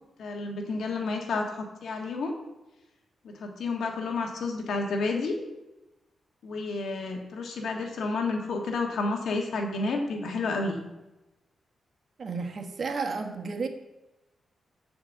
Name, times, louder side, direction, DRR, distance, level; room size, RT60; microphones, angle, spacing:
voice 1, 0.2-2.4 3.2-5.4 6.4-10.8, left 3 dB, 80° left, 2 dB, 1.5 m, -30 dB
voice 2, 12.2-13.7, right 4 dB, 50° right, 4 dB, 1.2 m, -32 dB
7.7 x 5.2 x 7.2 m, 1.0 s
cardioid pair, 75°, 0 cm